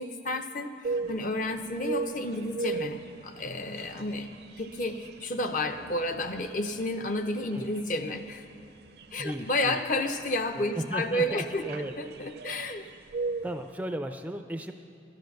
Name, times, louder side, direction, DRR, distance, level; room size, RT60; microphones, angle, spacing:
voice 1, 0.0-4.3 4.6-8.5 9.1-11.6 12.0-12.8, left 1 dB, 45° left, 7 dB, 0.6 m, -31 dB
sound 1, 0.8-13.7, right 4 dB, 60° right, 0.5 m, -39 dB
voice 2, 9.2-9.8 10.6-11.9 12.8-12.9 13.4-14.7, right 1 dB, 10° right, 7 dB, 0.4 m, -35 dB
12.5 x 10.5 x 6.5 m, 2.7 s
head